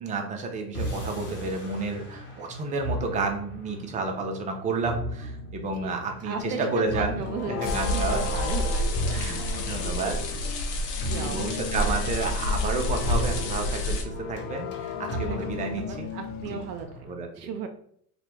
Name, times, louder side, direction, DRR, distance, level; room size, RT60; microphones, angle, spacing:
voice 1, 0.0-8.2 9.1-10.5 11.1-16.1 16.5-16.6 17.0-17.3, right 3 dB, 15° right, 3 dB, 0.4 m, -31 dB
sound 1, 0.7-17.1, right 1 dB, 25° left, 0.9 m, -37 dB
voice 2, 5.8-9.7 11.1-12.0 15.1-17.7, right 6 dB, 70° right, 6 dB, 0.5 m, -37 dB
sound 2, 6.4-10.5 10.9-16.8, left 7 dB, 45° left, 0.5 m, -37 dB
sound 3, 7.6-14.0, left 1 dB, 75° left, 0.8 m, -29 dB
2.9 x 2.2 x 3.2 m, 0.64 s
hypercardioid pair, 95°, 49 cm